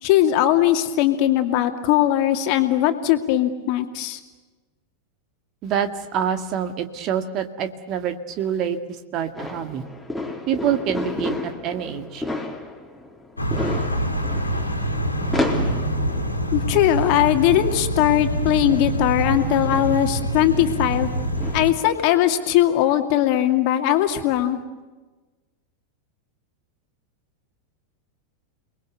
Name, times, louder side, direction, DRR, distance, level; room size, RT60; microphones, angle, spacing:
voice 1, 0.0-4.2 16.5-21.1 21.5-24.6, left 12 dB, 45° left, 6 dB, 2.5 m, -20 dB
voice 2, 5.6-8.8 9.1-9.8 10.5-12.3, right 9 dB, 35° right, 8 dB, 1.9 m, -26 dB
sound 1, 9.3-22.1, left 2 dB, ahead, 3.9 m, -33 dB
sound 2, 13.4-21.7, right 1 dB, 80° left, 2.9 m, -25 dB
30.0 x 21.0 x 8.1 m, 1.2 s
figure-of-eight pair, 90°, 0 cm